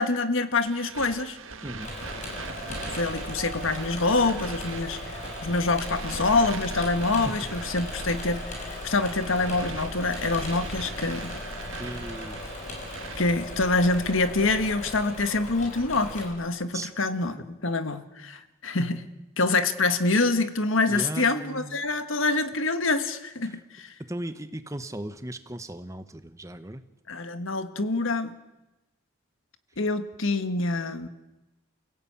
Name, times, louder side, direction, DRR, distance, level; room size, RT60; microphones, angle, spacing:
voice 1, 0.0-1.4 2.7-11.3 13.2-19.0 19.4-23.9 27.1-28.3 29.8-31.1, left 3 dB, 75° left, 9 dB, 1.6 m, -26 dB
sound 1, 0.6-13.2, right 4 dB, 70° right, 1.9 m, -41 dB
voice 2, 1.6-1.9 7.2-7.3 11.8-12.4 16.7-16.9 20.9-21.8 23.4-23.6 24.1-26.8, right 1 dB, 15° right, 10 dB, 1.0 m, -37 dB
Engine / Mechanisms, 1.8-16.3, left 1 dB, 35° left, 6.3 m, -37 dB
sound 2, 2.3-9.6, right 1 dB, 30° right, 5.7 m, -48 dB
29.0 x 16.5 x 8.7 m, 1.0 s
head